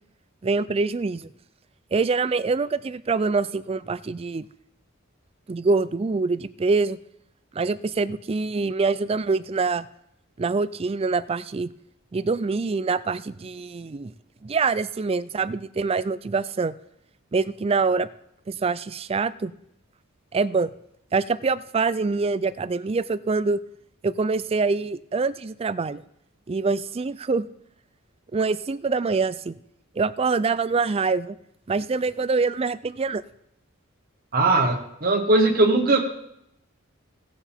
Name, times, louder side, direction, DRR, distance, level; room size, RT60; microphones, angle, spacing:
voice 1, 0.4-1.3 1.9-4.5 5.5-7.0 7.5-9.9 10.4-11.7 12.1-14.1 14.4-16.7 17.3-18.1 18.5-19.5 20.3-20.7 21.1-23.6 24.0-26.0 26.5-27.5 28.3-29.6 30.0-31.4 31.7-33.2, right 4 dB, 30° right, 15 dB, 0.4 m, -25 dB
voice 2, 34.3-36.0, right 2 dB, 45° right, 1 dB, 1.3 m, -19 dB
17.5 x 7.2 x 3.5 m, 0.77 s
head